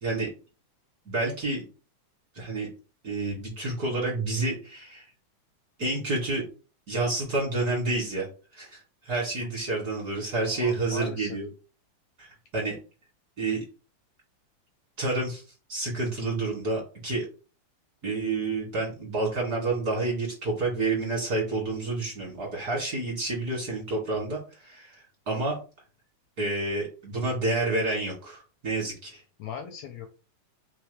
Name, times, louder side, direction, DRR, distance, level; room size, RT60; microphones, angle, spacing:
voice 1, 1.1-1.7 2.3-2.7 3.0-5.1 5.8-6.4 6.9-8.3 8.5-11.5 12.2-12.8 13.4-13.6 15.0-15.4 15.7-17.3 18.0-25.6 26.4-29.2, right 2 dB, 35° right, -5 dB, 2.0 m, -29 dB
voice 2, 10.4-11.4 29.4-30.1, left 7 dB, 75° left, 4 dB, 1.7 m, -39 dB
4.6 x 3.3 x 3.3 m, 0.34 s
omnidirectional pair, 3.6 m